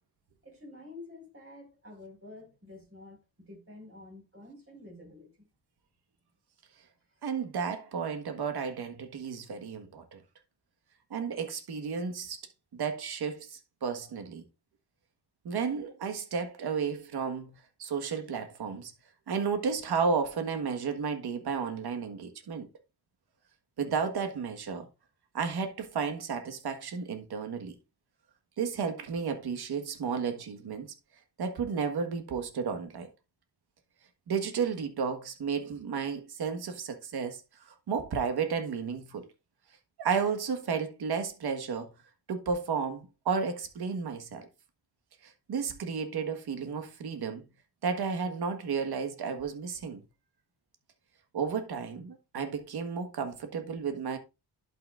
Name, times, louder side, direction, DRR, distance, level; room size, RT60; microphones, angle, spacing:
voice 1, 0.4-5.4 7.1-7.2, left 2 dB, 30° right, 5.0 m, -49 dB
voice 2, 7.2-10.2 11.1-12.4 12.7-14.4 15.4-17.5 17.8-18.9 19.3-22.7 23.8-24.9 25.3-27.7 28.6-30.9 31.4-33.1 34.3-39.2 40.0-41.9 42.3-44.5 45.2-47.4 47.8-50.0 51.3-54.2, right 6 dB, 65° right, 1.6 m, -32 dB
11.5 x 5.9 x 2.5 m
cardioid pair, 90°, 41 cm